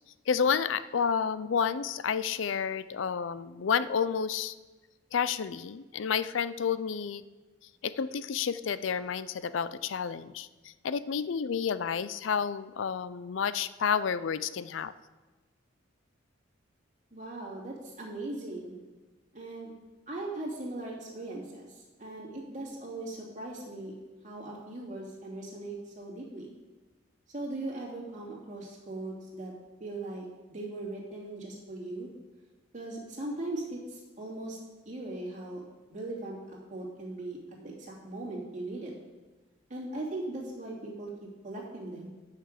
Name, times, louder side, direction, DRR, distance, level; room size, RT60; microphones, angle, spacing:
voice 1, 0.3-4.5 5.1-7.2 7.8-10.5 10.8-14.9, left 6 dB, 75° left, 15 dB, 0.4 m, -30 dB
voice 2, 17.1-18.7 19.3-19.7 20.1-23.9 24.2-26.5 27.3-29.5 29.8-32.1 32.7-34.6 34.8-35.6 35.9-38.9 39.7-41.1 41.4-42.1, right 2 dB, 40° right, -4 dB, 2.7 m, -39 dB
10.0 x 5.8 x 6.6 m, 1.2 s
head